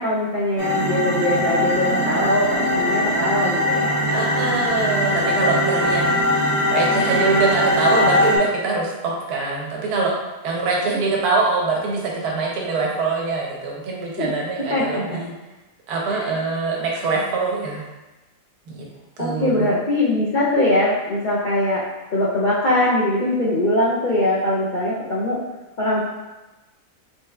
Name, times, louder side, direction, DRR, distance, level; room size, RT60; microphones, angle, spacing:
voice 1, 0.0-4.0 14.2-14.3 14.7-15.2 16.1-16.3 19.2-21.8 22.1-25.4 25.8-26.0, left 1 dB, 75° left, -7 dB, 0.4 m, -21 dB
sound 1, 0.6-8.4, left 1 dB, 40° right, 1.5 m, -21 dB
voice 2, 4.1-10.1 10.4-15.3 15.9-17.8 18.7-18.8 19.2-19.7, right 3 dB, 80° right, -2 dB, 1.3 m, -24 dB
4.4 x 3.3 x 2.3 m, 1.1 s
omnidirectional pair, 1.7 m